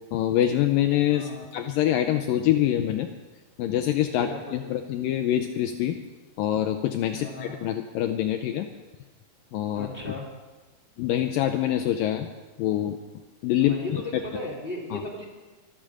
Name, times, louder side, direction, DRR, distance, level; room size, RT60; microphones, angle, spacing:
voice 1, 0.1-3.1 3.6-6.0 6.4-8.7 9.5-10.1 11.0-12.3 12.6-13.0 13.4-14.2 14.9-15.0, left 12 dB, 85° left, 7 dB, 2.0 m, -25 dB
voice 2, 1.1-1.5 4.2-4.8 7.1-7.6 9.7-10.3 13.6-15.2, left 1 dB, 30° left, -1 dB, 0.9 m, -36 dB
24.0 x 8.8 x 5.1 m, 1.2 s
omnidirectional pair, 4.6 m